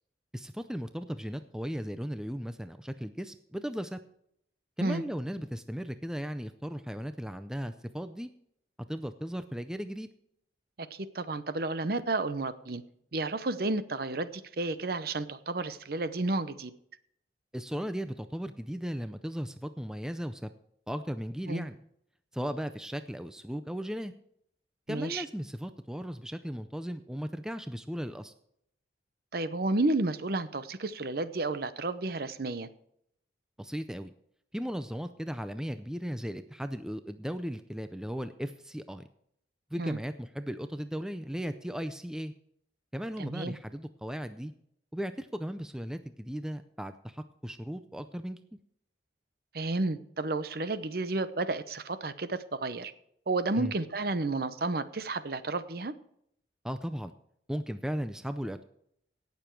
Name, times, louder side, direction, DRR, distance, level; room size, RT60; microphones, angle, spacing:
voice 1, 0.3-4.0 4.8-8.3 8.9-10.1 17.5-20.5 20.9-21.8 22.3-24.1 24.9-28.3 33.6-34.1 34.5-39.1 39.7-42.3 42.9-44.5 44.9-48.4 53.6-53.7 56.6-57.1 57.5-58.6, equal, 5° right, 10 dB, 0.4 m, -36 dB
voice 2, 10.8-12.8 13.1-16.7 21.5-21.6 24.9-25.2 29.3-32.7 39.8-40.0 43.2-43.5 49.5-52.9 53.3-55.9, right 2 dB, 55° right, 13 dB, 0.7 m, -31 dB
17.5 x 7.0 x 4.6 m, 0.72 s
head